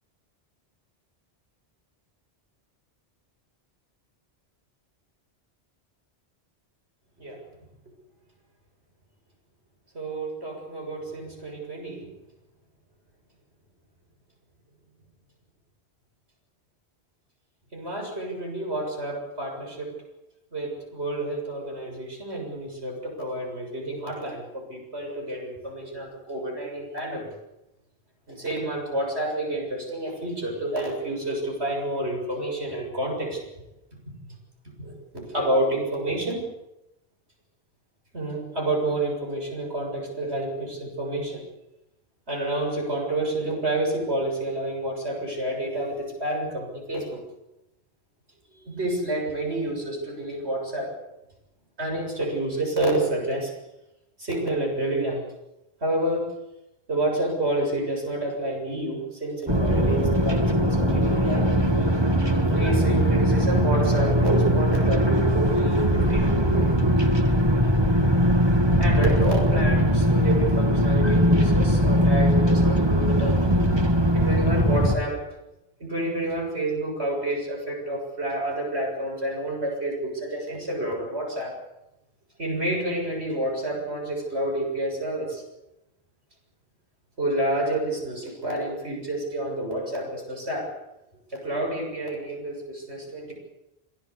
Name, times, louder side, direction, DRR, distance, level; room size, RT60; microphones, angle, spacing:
voice 1, 9.9-12.1 17.7-19.9 20.5-27.3 28.3-33.4 34.8-36.4 38.1-41.4 42.3-47.2 48.5-50.9 51.8-53.5 54.2-55.2 55.8-56.2 56.9-61.4 62.5-66.7 68.8-73.7 74.1-75.2 75.8-81.5 82.4-85.4 87.2-90.7 91.3-93.3, right 1 dB, 75° right, 1 dB, 7.4 m, -29 dB
sound 1, 59.5-75.0, equal, 25° right, 2.0 m, -20 dB
27.0 x 18.5 x 8.4 m, 0.93 s
omnidirectional pair, 1.1 m